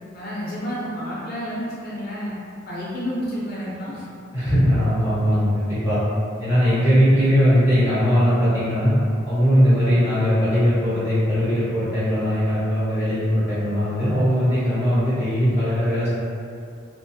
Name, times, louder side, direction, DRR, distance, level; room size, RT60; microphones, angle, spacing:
voice 1, 0.1-2.3 2.7-4.0, equal, 50° left, -8 dB, 0.5 m, -30 dB
voice 2, 4.3-6.0 6.4-8.9 9.2-16.1, equal, 10° right, -14 dB, 1.1 m, -19 dB
2.4 x 2.3 x 2.7 m, 2.4 s
head